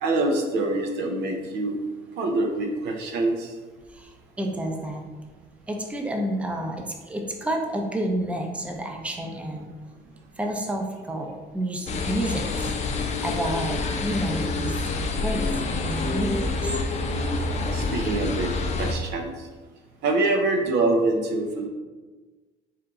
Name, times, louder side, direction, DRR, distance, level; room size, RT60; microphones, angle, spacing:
voice 1, 0.0-1.8 2.2-3.5 17.7-19.3 20.0-21.7, right 2 dB, 80° right, 3 dB, 0.6 m, -25 dB
voice 2, 3.9-5.0 5.7-9.7 10.4-12.7 13.2-14.8 15.2-16.9, right 1 dB, 5° right, 2 dB, 0.5 m, -30 dB
sound 1, 11.9-18.9, left 3 dB, 40° left, 0.5 m, -27 dB
4.4 x 2.5 x 3.6 m, 1.3 s
cardioid pair, 110°, 17 cm